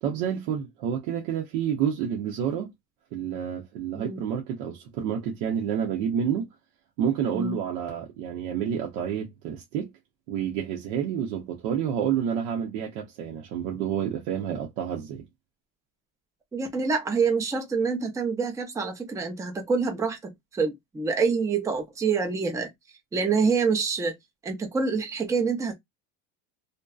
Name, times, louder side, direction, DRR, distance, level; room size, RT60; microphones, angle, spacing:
voice 1, 0.0-2.7 3.1-6.5 7.0-9.9 10.3-15.2, right 8 dB, 85° right, 0.8 m, -29 dB
voice 2, 16.5-22.7 23.1-24.2 24.4-25.7, right 5 dB, 10° right, 0.4 m, -26 dB
2.6 x 2.1 x 2.3 m
cardioid pair, 150°, 37 cm